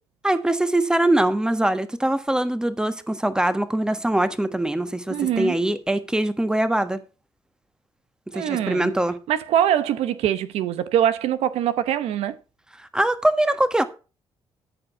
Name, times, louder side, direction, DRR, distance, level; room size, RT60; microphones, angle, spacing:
voice 1, 0.2-7.0 8.3-9.2 12.9-13.8, right 1 dB, 5° right, 1.3 m, -22 dB
voice 2, 5.1-5.5 8.3-8.9 9.3-12.4, right 10 dB, 90° right, 0.8 m, -23 dB
13.5 x 5.1 x 6.0 m
cardioid pair, 90°, 10 cm